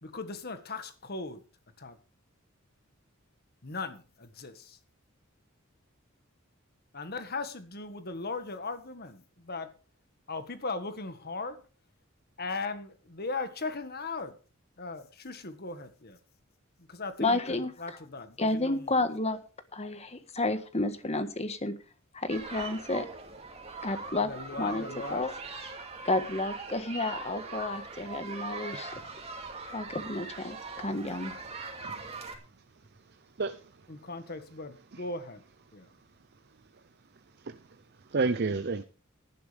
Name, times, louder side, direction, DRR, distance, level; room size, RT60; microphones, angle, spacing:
voice 1, 0.0-1.4 1.8-2.0 3.6-4.8 6.9-9.7 10.3-11.6 12.4-14.3 14.8-16.2 16.9-19.0 24.2-25.2 33.9-35.4 35.7-35.9, left 3 dB, 50° left, 10 dB, 1.7 m, -38 dB
voice 2, 17.2-18.0 18.4-19.4 19.7-21.7 22.1-23.1 23.8-24.3 24.6-25.3 26.0-29.0 29.7-31.4, left 2 dB, 30° left, 10 dB, 1.5 m, -31 dB
sound 1, 22.3-32.4, right 4 dB, 30° right, 2.6 m, -41 dB
voice 3, 31.8-32.2 33.0-33.9 34.9-35.0 36.7-36.8 37.1-38.8, right 3 dB, 50° right, 11 dB, 0.7 m, -33 dB
17.0 x 11.5 x 3.5 m, 0.35 s
head